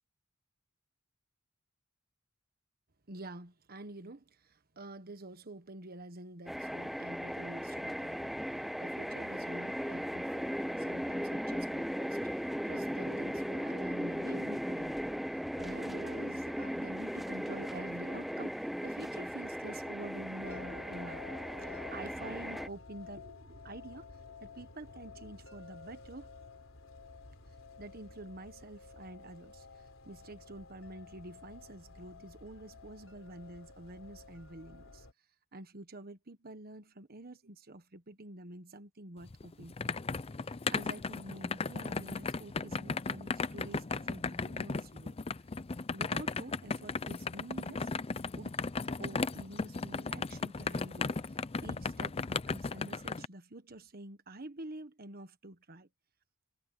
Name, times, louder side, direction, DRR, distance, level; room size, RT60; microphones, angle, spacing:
voice 1, 3.1-24.1 24.4-26.3 27.8-35.1 35.5-39.9 40.4-45.1 45.9-47.9 48.3-48.6 49.0-55.9, right 2 dB, 45° right, 1.4 m, -48 dB
sound 1, 6.5-22.7, equal, ahead, 0.8 m, -37 dB
sound 2, 20.4-35.1, left 4 dB, 80° left, 3.8 m, -52 dB
sound 3, 39.2-53.3, left 4 dB, 30° left, 0.5 m, -36 dB
head